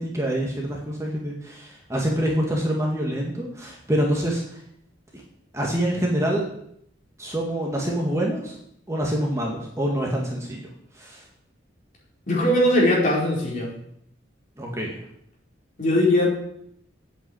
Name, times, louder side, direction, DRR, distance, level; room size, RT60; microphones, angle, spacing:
voice 1, 0.0-4.6 5.1-5.2 5.5-6.4 7.2-8.6 8.9-10.6 10.9-11.3 14.6-15.0, right 1 dB, 15° right, -2 dB, 2.0 m, -26 dB
voice 2, 12.3-13.7 15.8-16.3, left 1 dB, 40° left, -4 dB, 4.5 m, -20 dB
8.9 x 8.1 x 8.6 m, 0.71 s
head